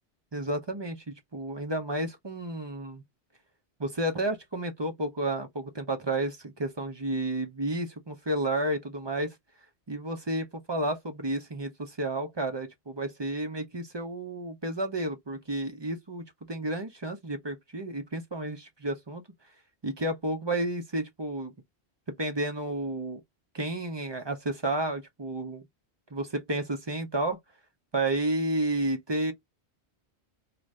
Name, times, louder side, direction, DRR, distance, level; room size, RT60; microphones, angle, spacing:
voice 1, 0.3-3.0 3.8-9.3 9.9-19.2 19.8-21.5 22.2-23.2 23.5-25.6 26.1-27.4 27.9-29.3, right 1 dB, 30° right, 0.6 m, -31 dB
2.6 x 2.4 x 3.2 m
omnidirectional pair, 1.1 m